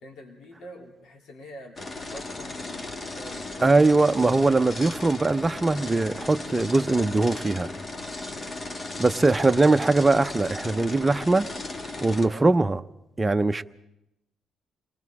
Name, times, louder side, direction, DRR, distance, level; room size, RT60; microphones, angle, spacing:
voice 1, 0.0-1.8 2.0-3.8 8.3-8.6 12.2-12.5, equal, 70° left, 1 dB, 3.9 m, -45 dB
sound 1, 1.8-12.3, left 2 dB, 30° left, 1.5 m, -36 dB
voice 2, 3.6-7.7 9.0-11.5 12.0-12.8 13.2-13.6, right 3 dB, 20° right, 9 dB, 0.8 m, -21 dB
28.0 x 20.0 x 4.8 m, 0.88 s
cardioid pair, 90°, 0 cm